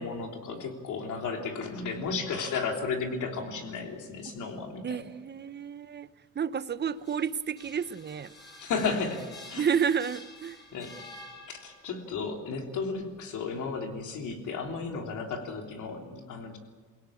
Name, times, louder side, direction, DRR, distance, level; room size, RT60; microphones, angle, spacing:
voice 1, 0.0-5.0 8.6-9.2 9.5-9.7 10.7-10.9 11.5-16.6, left 4 dB, 80° left, 2 dB, 3.4 m, -34 dB
voice 2, 4.8-6.1 6.3-8.3 9.6-10.6, right 7 dB, 35° right, 14 dB, 0.8 m, -30 dB
sound 1, 6.8-12.0, left 2 dB, 35° left, 7.1 m, -49 dB
23.5 x 17.0 x 8.6 m, 1.4 s
cardioid pair, 90°, 30 cm